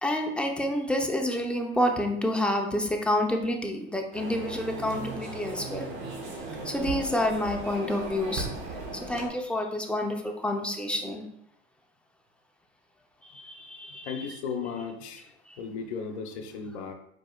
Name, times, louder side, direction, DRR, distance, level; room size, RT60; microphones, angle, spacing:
voice 1, 0.0-5.9 6.6-8.5 8.9-11.2 13.2-14.3 15.5-15.6, left 1 dB, 5° left, 2 dB, 0.7 m, -29 dB
sound 1, 4.1-9.3, right 3 dB, 65° right, 1.3 m, -37 dB
voice 2, 14.1-15.2 15.6-16.9, left 6 dB, 75° left, 6 dB, 0.8 m, -35 dB
4.8 x 4.5 x 2.4 m, 0.74 s
hypercardioid pair, 90°, 33 cm